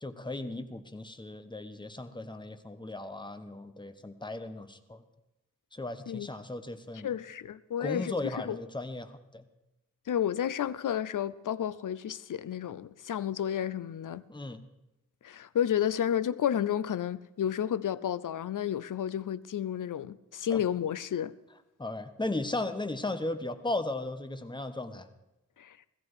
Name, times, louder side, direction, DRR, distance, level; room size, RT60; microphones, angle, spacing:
voice 1, 0.0-5.0 5.7-7.1 7.8-9.4 14.3-14.6 20.5-20.6 21.8-25.1, left 2 dB, 15° left, 1.1 m, -36 dB
voice 2, 7.0-8.1 8.5-8.6 10.1-14.2 15.2-21.3 25.6-25.8, left 9 dB, 70° left, 0.6 m, -31 dB
16.0 x 14.5 x 4.8 m
wide cardioid pair, 90°, 33 cm